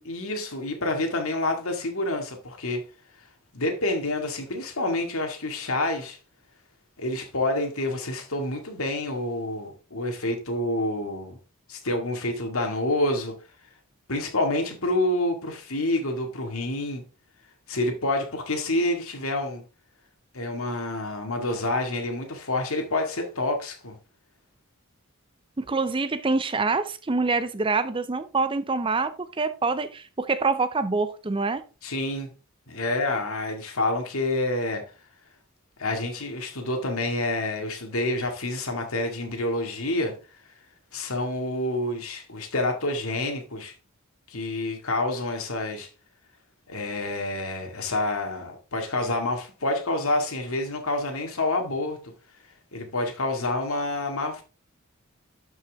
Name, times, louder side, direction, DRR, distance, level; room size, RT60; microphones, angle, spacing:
voice 1, 0.0-2.8 3.5-6.2 7.0-11.4 11.7-13.4 14.1-17.0 17.7-19.6 20.3-24.0 31.8-32.3 32.7-34.8 35.8-40.1 40.9-43.7 44.3-45.9 46.7-52.0 52.7-54.4, left 2 dB, 70° left, 2.1 m, -28 dB
voice 2, 25.6-31.6, right 3 dB, 25° right, 0.6 m, -26 dB
12.0 x 5.6 x 3.5 m
head